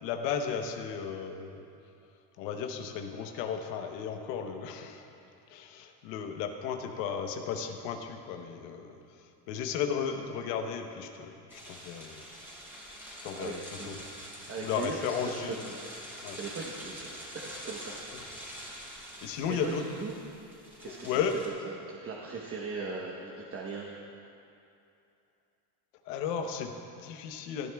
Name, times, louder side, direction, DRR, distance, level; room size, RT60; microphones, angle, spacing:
voice 1, 0.0-1.7 2.4-5.1 5.5-12.2 12.8-12.9 13.2-14.0 14.6-15.7 16.2-16.4 19.2-19.9 20.8-21.4 26.0-27.7, left 7 dB, 80° left, 5 dB, 1.0 m, -35 dB
sound 1, 11.5-21.5, equal, 5° right, 2.6 m, -45 dB
voice 2, 13.4-14.1 14.5-15.9 16.3-18.0 19.5-20.1 20.8-21.1 21.6-23.9, right 4 dB, 25° right, -2 dB, 1.0 m, -39 dB
18.5 x 11.0 x 2.3 m, 2.6 s
supercardioid pair, 115°, 49 cm